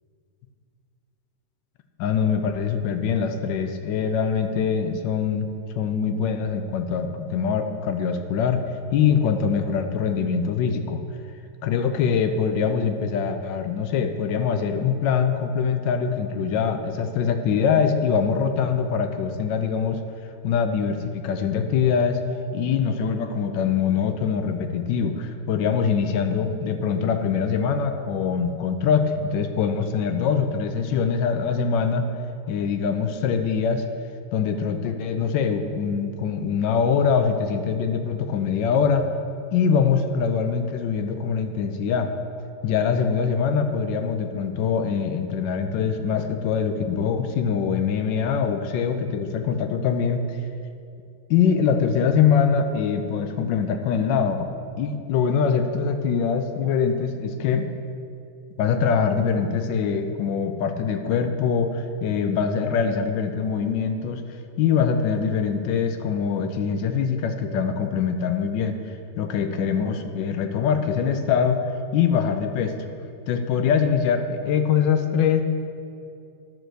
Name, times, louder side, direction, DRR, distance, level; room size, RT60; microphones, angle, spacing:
voice 1, 2.0-5.5 5.7-8.6 8.9-11.0 11.6-20.0 20.4-22.2 22.5-32.1 32.5-33.8 34.3-39.0 39.5-42.1 42.6-50.4 51.3-54.5 54.8-57.7 58.6-64.2 64.6-68.8 69.2-71.6 71.9-72.8 73.3-75.4, left 6 dB, 75° left, 7 dB, 1.2 m, -23 dB
10.5 x 4.6 x 6.3 m, 2.5 s
omnidirectional pair, 2.3 m